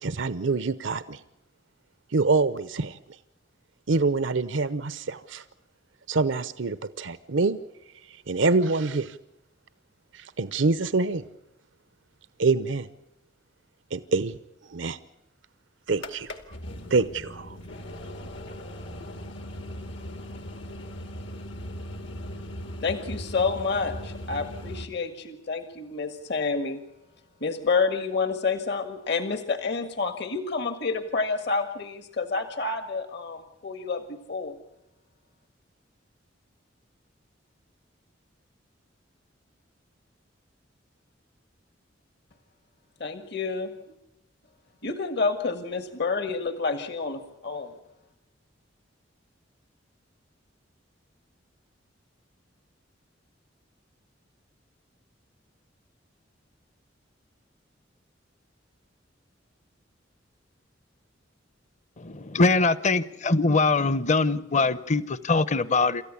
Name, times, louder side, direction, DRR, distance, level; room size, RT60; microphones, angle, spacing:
voice 1, 0.0-1.2 2.1-3.0 3.9-5.4 6.1-7.6 8.1-9.2 10.1-11.3 12.4-12.9 13.9-14.4 14.6-15.0 15.9-16.3 16.9-17.6, right 3 dB, 85° right, 14 dB, 0.8 m, -25 dB
sound 1, 15.9-24.9, equal, 80° left, 2.2 m, -38 dB
voice 2, 22.8-26.8 27.4-34.0 34.3-34.5 43.0-44.0 44.8-47.7, left 4 dB, 65° left, 9 dB, 1.6 m, -29 dB
voice 3, 62.0-66.0, left 3 dB, 40° left, 17 dB, 0.8 m, -23 dB
27.5 x 14.5 x 8.4 m, 0.88 s
head